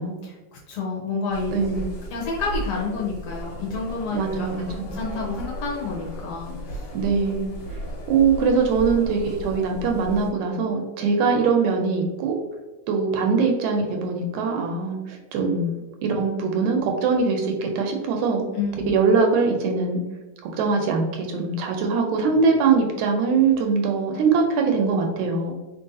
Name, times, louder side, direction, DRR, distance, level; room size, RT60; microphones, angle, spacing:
voice 1, 0.2-1.8 2.1-4.5 4.8-6.9 18.5-18.9, left 4 dB, 70° left, -3 dB, 1.8 m, -29 dB
sound 1, 1.3-10.3, right 1 dB, 50° left, 1.9 m, -35 dB
voice 2, 1.5-1.9 4.1-4.9 6.9-7.6 8.1-12.3 12.9-15.7 16.0-18.5 18.9-20.0 20.6-25.5, right 5 dB, 80° right, 2 dB, 1.8 m, -22 dB
4.6 x 4.1 x 2.6 m, 1.2 s
omnidirectional pair, 3.6 m